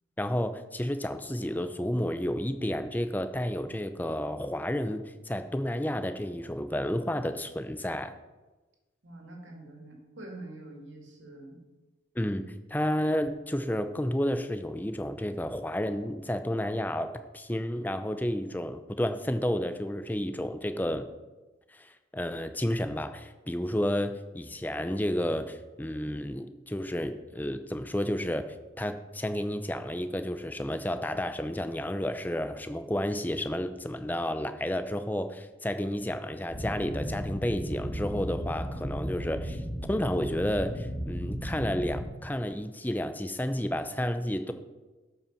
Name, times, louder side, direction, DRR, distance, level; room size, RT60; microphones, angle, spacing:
voice 1, 0.2-8.1 12.2-21.1 21.7-28.5 28.8-39.6 39.9-44.5, left 1 dB, 10° left, 9 dB, 0.6 m, -31 dB
voice 2, 9.0-11.6, right 2 dB, 85° right, 0 dB, 2.4 m, -45 dB
sound 1, 36.5-42.1, equal, 70° left, 2.4 m, -35 dB
12.0 x 5.5 x 5.8 m, 1.2 s
head